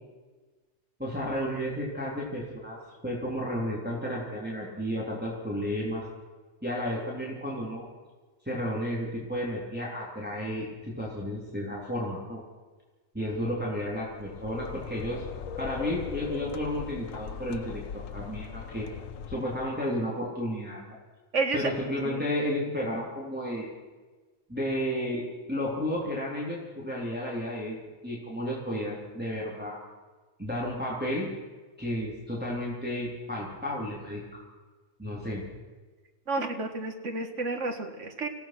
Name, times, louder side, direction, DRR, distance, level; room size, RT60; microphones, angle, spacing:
voice 1, 1.0-2.8 3.0-6.0 6.6-7.8 8.4-12.4 13.1-15.2 15.6-17.8 18.1-18.9 19.3-21.0 21.5-23.7 24.5-25.2 25.5-27.7 28.0-29.8 30.4-31.3 31.8-34.4 35.0-35.4, equal, 5° right, -5 dB, 3.5 m, -32 dB
sound 1, 14.0-20.0, left 8 dB, 85° left, 1.2 m, -39 dB
voice 2, 21.3-21.7 22.0-22.2 36.3-38.3, right 3 dB, 65° right, 5 dB, 2.1 m, -30 dB
26.0 x 16.5 x 6.1 m, 1.3 s
omnidirectional pair, 1.3 m